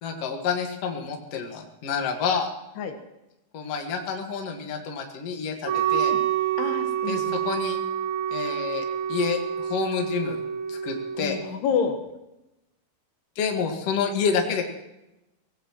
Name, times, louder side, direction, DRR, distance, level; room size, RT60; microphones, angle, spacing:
voice 1, 0.0-2.5 3.5-6.1 7.1-7.8 8.3-10.4 10.7-11.4 13.4-14.7, left 6 dB, 50° left, 3 dB, 2.2 m, -28 dB
Wind instrument woodwind instrument, 5.6-11.5, right 9 dB, 60° right, 2.4 m, -27 dB
voice 2, 5.9-6.2 6.6-7.4 11.2-12.0, left 6 dB, 80° left, 5 dB, 3.4 m, -29 dB
24.0 x 17.5 x 3.1 m, 0.94 s
omnidirectional pair, 4.6 m